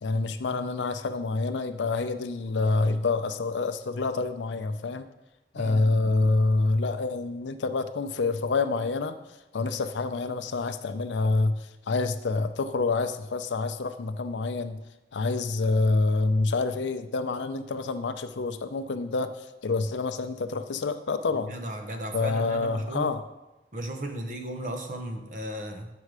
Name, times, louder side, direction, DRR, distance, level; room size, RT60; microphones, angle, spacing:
voice 1, 0.0-5.1 5.5-9.2 9.5-14.8 15.1-21.5 22.1-23.2, left 3 dB, 90° left, 10 dB, 0.5 m, -27 dB
voice 2, 5.5-6.3 21.5-23.1 23.7-25.9, right 1 dB, 45° right, 5 dB, 0.9 m, -36 dB
7.7 x 5.5 x 4.8 m, 1.0 s
head